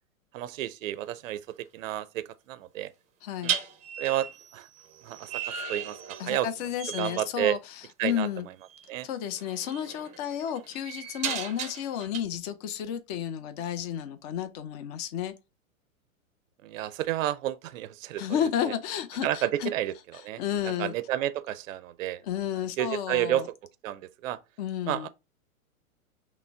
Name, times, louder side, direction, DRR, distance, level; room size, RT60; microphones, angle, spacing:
voice 1, 0.3-2.9 3.4-3.5 4.0-4.7 5.0-5.4 5.7-6.5 7.0-7.6 8.0-8.3 8.9-9.1 16.6-18.4 19.2-22.2 22.8-23.4 23.8-24.4 24.9-25.1, right 13 dB, 65° right, 0.5 m, -31 dB
sound 1, 0.8-1.1 3.4-6.5 6.8-7.2 8.7-8.9 9.4-12.2, right 8 dB, 15° right, 0.6 m, -36 dB
voice 2, 3.2-3.6 6.2-8.5 9.0-15.3 18.2-19.7 20.1-20.9 22.2-23.5 24.6-25.1, left 9 dB, 30° left, 0.5 m, -32 dB
5.8 x 2.1 x 3.3 m
hypercardioid pair, 120°, 43 cm